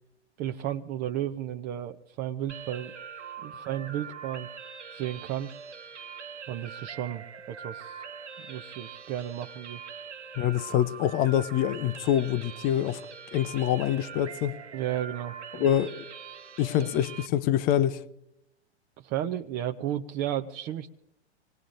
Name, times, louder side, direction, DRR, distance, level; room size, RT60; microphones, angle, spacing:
voice 1, 0.4-2.9 3.4-4.5 4.9-5.5 6.5-8.0 8.4-9.8 14.7-15.7 16.8-16.9 19.0-20.9, right 11 dB, 25° right, 0.6 m, -33 dB
sound 1, 2.5-17.3, right 6 dB, 85° right, 1.3 m, -43 dB
voice 2, 10.4-13.0 13.3-14.6 15.6-16.0 16.6-18.0, left 11 dB, 25° left, 0.6 m, -25 dB
26.5 x 19.5 x 2.6 m
figure-of-eight pair, 110°, 34 cm